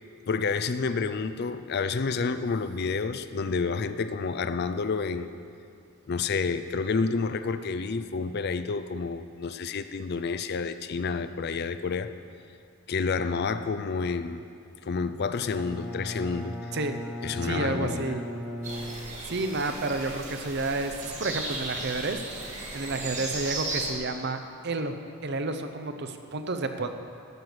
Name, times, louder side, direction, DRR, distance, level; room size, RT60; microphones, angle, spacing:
voice 1, 0.3-5.3 6.1-12.1 12.9-14.4 14.8-16.6 17.2-18.2, left 4 dB, 50° left, 12 dB, 0.4 m, -29 dB
Bowed string instrument, 15.4-19.6, left 1 dB, 5° right, 1.2 m, -38 dB
voice 2, 17.4-18.2 19.3-24.4 24.6-24.9 25.2-26.9, right 3 dB, 50° right, 8 dB, 0.7 m, -30 dB
sound 1, 18.6-23.9, right 2 dB, 35° right, 1.8 m, -36 dB
12.0 x 8.1 x 6.2 m, 2.4 s
head